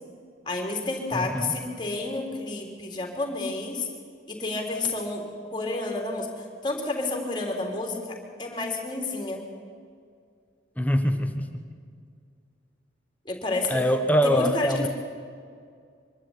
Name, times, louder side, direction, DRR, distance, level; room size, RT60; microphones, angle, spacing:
voice 1, 0.5-3.9 4.3-5.2 5.5-9.4 13.3-13.8 14.2-14.9, left 2 dB, 25° left, 2 dB, 3.6 m, -30 dB
voice 2, 1.1-1.5 10.8-11.6 13.7-14.9, equal, 10° left, 6 dB, 1.2 m, -24 dB
24.5 x 12.5 x 9.9 m, 2.2 s
head